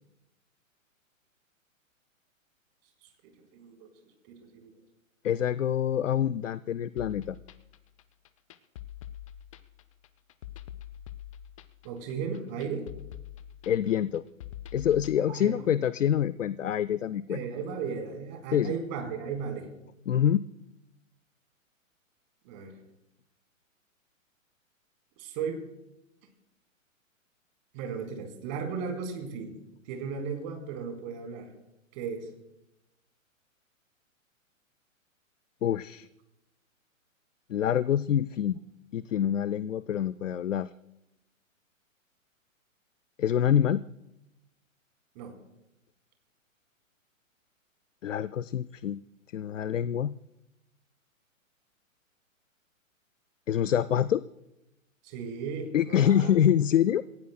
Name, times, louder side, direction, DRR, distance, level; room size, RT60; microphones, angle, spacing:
voice 1, 3.4-3.9 4.3-4.7 11.8-12.8 15.2-15.6 17.3-19.7 22.4-22.7 25.2-25.6 27.7-29.6 29.9-31.5 31.9-32.3 45.1-45.4 55.0-56.3, right 6 dB, 35° right, 3 dB, 4.1 m, -36 dB
voice 2, 5.2-7.4 13.7-14.2 14.7-17.4 18.5-18.7 20.1-20.4 35.6-36.1 37.5-38.6 38.9-40.7 43.2-43.8 48.0-49.0 49.3-50.1 53.5-54.2 55.7-57.0, left 10 dB, 65° left, 17 dB, 0.6 m, -26 dB
sound 1, 7.0-15.2, left 11 dB, 25° left, 0.5 m, -45 dB
27.5 x 16.0 x 2.2 m, 0.90 s
figure-of-eight pair, 120°, 41 cm